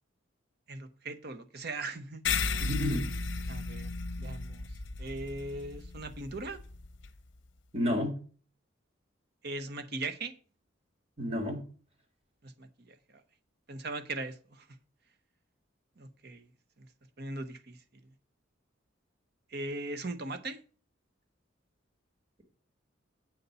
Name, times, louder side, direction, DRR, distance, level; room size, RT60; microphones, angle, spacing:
voice 1, 0.7-2.2 3.5-3.9 4.2-4.7 5.0-6.6 9.4-10.3 12.4-12.7 13.7-14.7 16.0-16.5 17.2-17.8 19.5-20.6, right 2 dB, 55° right, 0.8 m, -39 dB
sound 1, 2.2-7.1, left 4 dB, 65° left, 0.7 m, -35 dB
voice 2, 2.6-3.1 7.7-8.2 11.2-11.6, left 1 dB, 30° right, 1.7 m, -30 dB
8.1 x 4.1 x 6.8 m
head